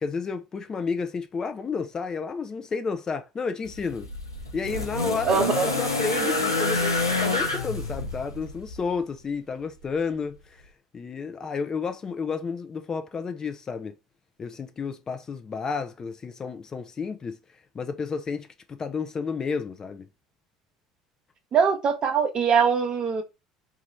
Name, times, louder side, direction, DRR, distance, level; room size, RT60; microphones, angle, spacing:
voice 1, 0.0-4.1 4.5-10.6 10.9-13.9 14.4-20.1, left 5 dB, 30° left, 0.4 m, -31 dB
sound 1, 3.6-8.9 9.9-10.0, left 2 dB, 90° left, 0.5 m, -28 dB
voice 2, 5.2-5.7 21.5-23.2, right 6 dB, 40° right, 0.6 m, -22 dB
2.9 x 2.4 x 3.0 m
figure-of-eight pair, 65°, 2 cm